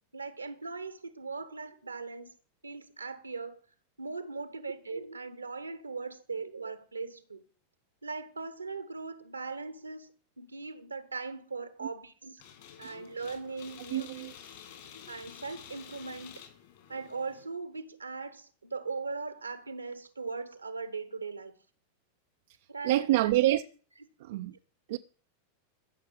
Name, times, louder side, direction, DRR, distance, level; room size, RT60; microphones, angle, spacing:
voice 1, 0.1-2.3 2.6-3.6 4.0-7.4 8.0-12.4 12.8-14.1 15.1-16.3 16.9-21.6 22.7-23.1, right 4 dB, 80° right, 1.3 m, -39 dB
sound 1, 12.4-17.4, left 8 dB, 55° left, 4.2 m, -50 dB
voice 2, 13.9-14.3 22.8-23.6 24.2-24.5 24.9-25.0, right 15 dB, 55° right, 0.6 m, -26 dB
14.5 x 6.5 x 7.1 m
figure-of-eight pair, 90°, 0 cm